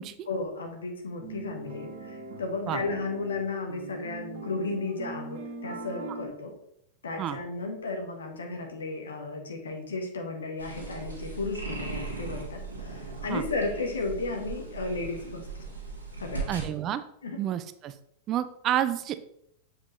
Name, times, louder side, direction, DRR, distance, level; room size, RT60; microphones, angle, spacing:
voice 1, 0.3-6.5 7.0-15.5 16.2-16.5 17.2-17.4, left 3 dB, 70° left, 3 dB, 1.2 m, -34 dB
sound 1, 1.2-6.3, right 3 dB, 50° right, 1.2 m, -41 dB
sound 2, 10.6-16.7, right 4 dB, 80° right, 1.7 m, -38 dB
voice 2, 16.5-17.0 17.4-17.9 18.3-19.2, right 11 dB, 35° right, 12 dB, 0.4 m, -29 dB
7.3 x 5.0 x 3.1 m, 0.74 s
figure-of-eight pair, 90°, 0 cm